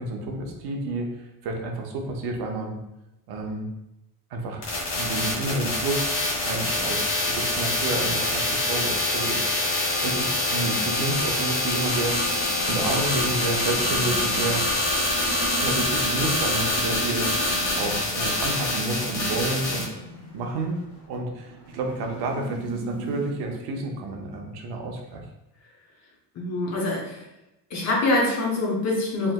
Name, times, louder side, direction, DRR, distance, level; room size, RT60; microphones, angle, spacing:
voice 1, 0.0-2.8 3.3-3.7 4.3-4.6 5.0-7.0 7.3-12.2 12.6-14.7 15.5-17.3 17.7-20.0 20.3-20.8 21.1-25.3, right 2 dB, 55° right, 2 dB, 0.6 m, -30 dB
sound 1, 4.6-19.8, left 2 dB, 75° left, 1.2 m, -25 dB
sound 2, 11.8-23.3, right 3 dB, 55° left, 1.4 m, -39 dB
voice 2, 26.3-27.3 27.7-29.3, left 2 dB, 40° left, -1 dB, 0.6 m, -25 dB
3.2 x 2.8 x 2.2 m, 0.92 s
cardioid pair, 160°, 45 cm